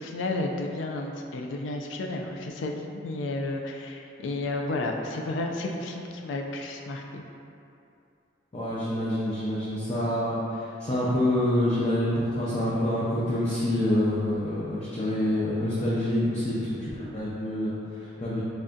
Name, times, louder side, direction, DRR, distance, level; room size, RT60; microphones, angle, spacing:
voice 1, 0.0-7.2, left 2 dB, 90° left, 2 dB, 0.4 m, -32 dB
voice 2, 8.5-18.4, left 1 dB, 30° left, -9 dB, 0.5 m, -27 dB
3.2 x 2.6 x 3.6 m, 2.7 s
head